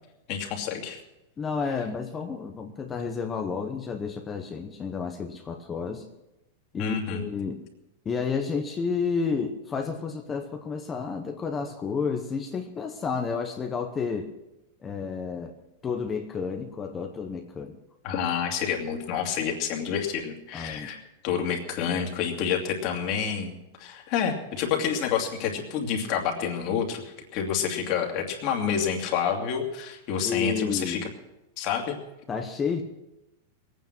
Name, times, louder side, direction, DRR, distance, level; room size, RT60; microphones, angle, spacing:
voice 1, 0.3-1.0 6.8-7.2 18.0-21.0 21.2-23.5 23.8-31.0 31.6-31.9, left 7 dB, 40° left, 1 dB, 2.6 m, -28 dB
voice 2, 1.4-6.1 6.7-7.6 8.0-14.3 14.8-15.5 15.8-17.8 20.5-20.9 30.2-31.1 32.3-32.8, left 5 dB, 15° left, 4 dB, 0.9 m, -31 dB
21.0 x 9.3 x 6.1 m, 0.96 s
supercardioid pair, 160°, 0 cm